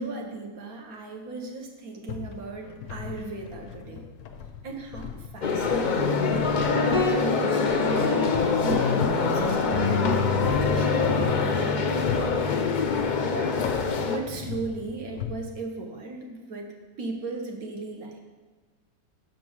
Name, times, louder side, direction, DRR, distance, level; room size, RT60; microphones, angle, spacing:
voice 1, 0.0-4.0 4.6-5.1 5.3-8.1 8.6-12.3 14.0-16.7 17.0-18.2, right 3 dB, 80° right, 2 dB, 1.4 m, -36 dB
sound 1, 2.1-15.3, left 7 dB, 90° left, 1.1 m, -39 dB
sound 2, 5.4-14.2, left 5 dB, 65° left, 0.4 m, -25 dB
Guitar, 6.0-15.4, left 3 dB, 45° right, 1.5 m, -30 dB
6.1 x 4.5 x 6.2 m, 1.4 s
omnidirectional pair, 1.5 m